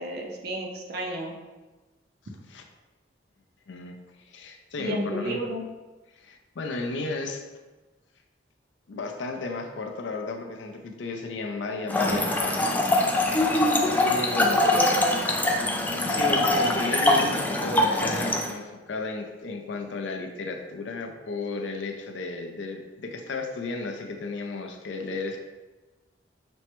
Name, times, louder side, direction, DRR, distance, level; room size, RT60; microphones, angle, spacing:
voice 1, 0.0-1.4 4.8-5.6 14.4-15.1, right 1 dB, 60° right, 0 dB, 0.6 m, -32 dB
voice 2, 3.7-5.6 6.1-7.4 8.9-13.0 14.0-14.8 16.1-25.4, left 3 dB, 80° left, 3 dB, 0.5 m, -34 dB
Trickle dribble / Fill (with liquid), 11.9-18.5, left 1 dB, 10° left, 0.3 m, -23 dB
6.1 x 2.2 x 2.9 m, 1.2 s
head